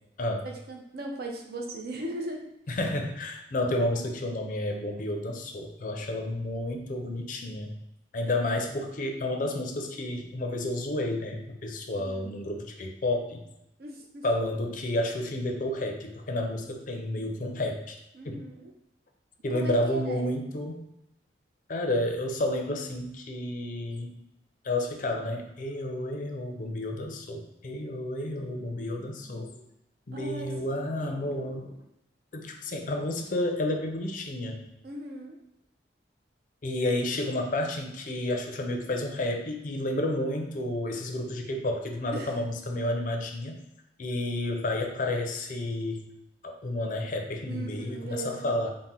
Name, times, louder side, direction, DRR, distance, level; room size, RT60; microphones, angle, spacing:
voice 1, 0.4-2.8 12.0-12.3 13.8-14.2 18.1-18.7 19.5-20.3 30.1-31.3 34.8-35.4 42.1-42.3 47.5-48.5, right 1 dB, 60° right, 1 dB, 0.6 m, -38 dB
voice 2, 2.7-7.7 8.1-13.4 14.2-18.0 18.2-18.4 19.4-20.8 21.7-24.2 24.6-29.7 30.1-31.8 32.3-34.7 36.6-43.6 44.0-46.1 46.4-48.7, left 1 dB, 45° left, 3 dB, 0.5 m, -31 dB
4.2 x 2.1 x 3.7 m, 0.86 s
head